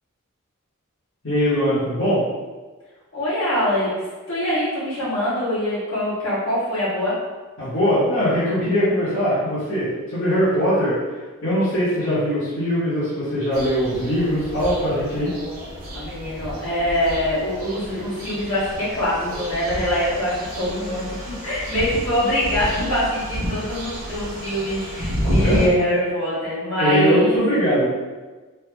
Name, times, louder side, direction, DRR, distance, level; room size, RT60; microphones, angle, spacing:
voice 1, 1.2-2.2 7.6-11.0 11.4-15.3 25.2-25.6 26.8-27.8, equal, 60° left, -12 dB, 1.1 m, -21 dB
voice 2, 3.1-4.0 4.3-7.2 15.9-21.2 21.4-27.4, equal, 75° left, -9 dB, 1.4 m, -23 dB
sound 1, 13.5-25.7, equal, 80° right, 1.0 m, -30 dB
3.4 x 2.1 x 3.4 m, 1.3 s
head